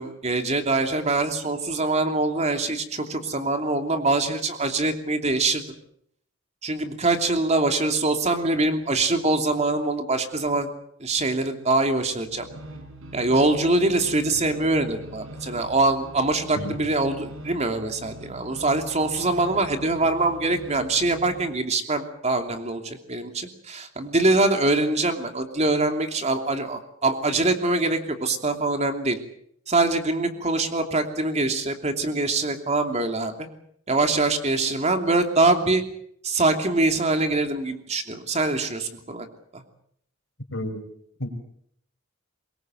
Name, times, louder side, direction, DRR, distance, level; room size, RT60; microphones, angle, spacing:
voice 1, 0.0-5.6 6.6-10.7 11.0-12.5 13.1-29.2 29.7-33.5 33.9-35.8 36.2-39.3 39.5-39.6, right 2 dB, 35° right, 6 dB, 2.9 m, -24 dB
sound 1, 12.0-21.6, right 1 dB, 85° right, 4.9 m, -42 dB
voice 2, 40.5-40.8 41.2-41.3, left 1 dB, 70° left, 6 dB, 5.3 m, -30 dB
24.0 x 21.5 x 7.9 m, 0.68 s
head